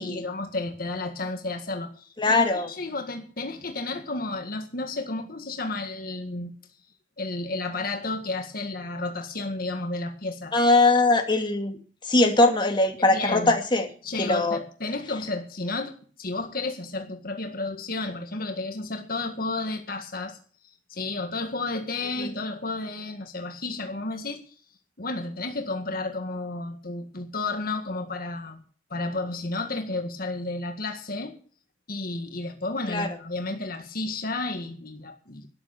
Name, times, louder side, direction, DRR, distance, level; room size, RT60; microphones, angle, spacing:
voice 1, 0.0-6.5 7.2-10.5 13.1-13.5 14.0-20.4 20.9-24.5 25.0-28.6 28.9-31.4 31.9-35.5, left 2 dB, 55° left, 5 dB, 1.8 m, -32 dB
voice 2, 2.2-2.7 10.5-11.8 12.1-13.9 14.2-14.6 22.2-22.3 32.9-33.1, left 2 dB, 25° left, 3 dB, 2.5 m, -21 dB
13.0 x 9.2 x 7.2 m, 0.42 s
head